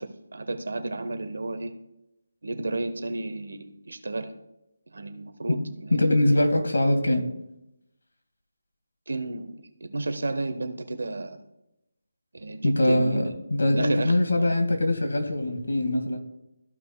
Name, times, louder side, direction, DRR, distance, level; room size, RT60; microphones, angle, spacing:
voice 1, 0.0-1.7 2.4-4.3 4.9-6.1 9.1-9.5 9.8-11.4 12.3-13.2 13.8-14.5, right 2 dB, 75° right, 8 dB, 1.2 m, -32 dB
voice 2, 5.9-7.2 12.6-13.2 13.5-16.2, left 1 dB, 90° left, 3 dB, 2.1 m, -22 dB
14.5 x 5.5 x 2.3 m, 0.89 s
figure-of-eight pair, 175°, 0 cm